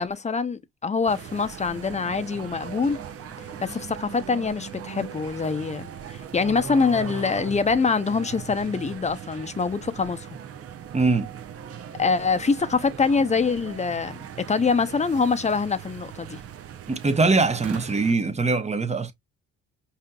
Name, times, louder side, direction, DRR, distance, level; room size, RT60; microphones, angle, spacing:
voice 1, 0.0-3.0 3.6-10.3 12.0-16.4, left 4 dB, 25° left, 0.7 m, -24 dB
sound 1, 1.1-18.1, right 9 dB, 50° right, 0.7 m, -40 dB
sound 2, 2.0-5.2 5.9-6.0 6.3-7.5, right 5 dB, 85° right, 1.7 m, -39 dB
voice 2, 10.9-11.3 16.9-19.1, right 3 dB, 20° right, 0.9 m, -22 dB
5.2 x 2.8 x 2.3 m
supercardioid pair, 70°, 30 cm